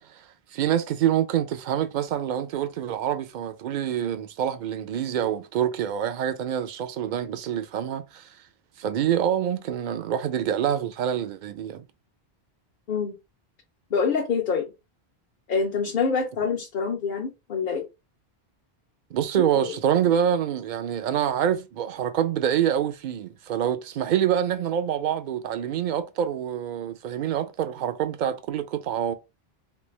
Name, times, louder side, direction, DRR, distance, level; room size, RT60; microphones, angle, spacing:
voice 1, 0.5-8.3 8.8-11.8 19.1-29.1, right 9 dB, 60° right, 0.6 m, -26 dB
voice 2, 13.9-14.7 15.5-17.9 19.4-19.7, left 5 dB, 60° left, 0.8 m, -26 dB
3.3 x 2.9 x 3.1 m
omnidirectional pair, 1.1 m